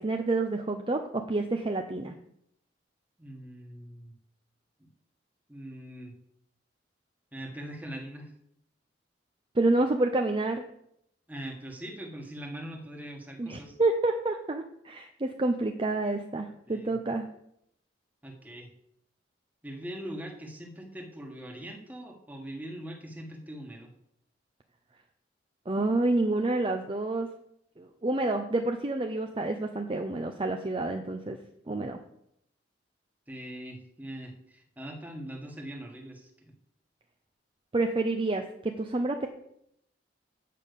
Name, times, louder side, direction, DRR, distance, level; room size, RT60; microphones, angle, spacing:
voice 1, 0.0-2.1 9.6-10.6 13.4-17.3 25.7-27.3 27.8-31.4 31.7-32.0 37.7-39.3, right 2 dB, 30° right, 5 dB, 0.5 m, -28 dB
voice 2, 3.2-4.1 4.8-4.9 5.5-6.1 7.3-8.3 11.3-13.7 16.7-16.9 18.2-18.7 19.6-23.9 33.3-36.5, right 1 dB, 10° right, 2 dB, 1.4 m, -42 dB
8.4 x 5.4 x 6.7 m, 0.75 s
head